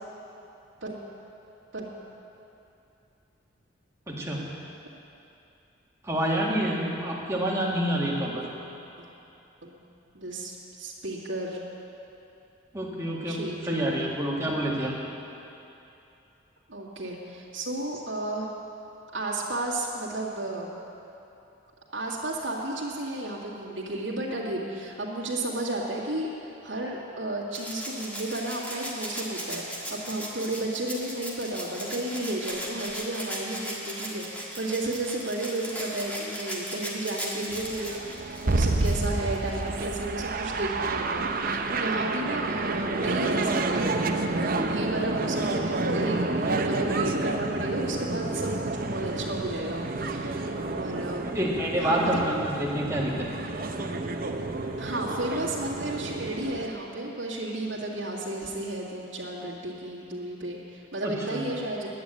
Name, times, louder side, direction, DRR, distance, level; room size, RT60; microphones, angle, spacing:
voice 1, 4.1-4.5 6.0-8.5 12.7-14.9 51.3-53.3 61.0-61.4, right 1 dB, 15° right, -4 dB, 1.7 m, -28 dB
voice 2, 10.1-11.6 13.3-14.1 16.7-18.5 19.1-20.7 21.9-26.3 26.6-51.3 51.8-52.2 54.8-61.9, right 1 dB, 80° right, -5 dB, 2.0 m, -33 dB
Rattle (instrument), 27.5-39.8 41.2-41.3, equal, 10° left, 1.5 m, -37 dB
sound 1, 37.5-56.7, right 2 dB, 45° right, 0.7 m, -29 dB
10.5 x 9.4 x 9.0 m, 2.8 s
head